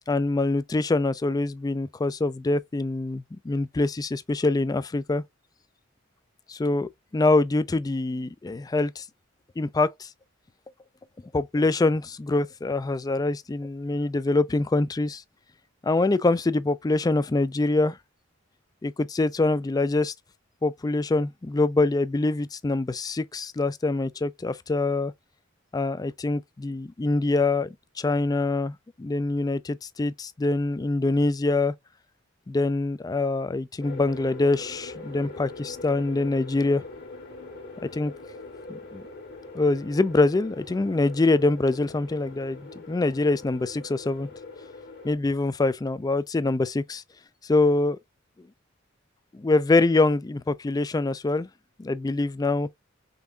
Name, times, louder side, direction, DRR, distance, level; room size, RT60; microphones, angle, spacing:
voice 1, 0.1-5.2 6.5-9.0 9.6-10.1 11.3-15.2 15.8-18.0 18.8-20.1 20.6-25.1 25.7-31.7 32.5-36.8 37.9-38.1 38.7-39.0 39.5-44.3 45.0-47.0 47.4-48.0 49.3-51.5 51.8-52.7, left 2 dB, 20° left, 0.3 m, -24 dB
sound 1, 33.8-45.1, left 3 dB, 55° left, 1.4 m, -42 dB
5.4 x 3.4 x 2.3 m
head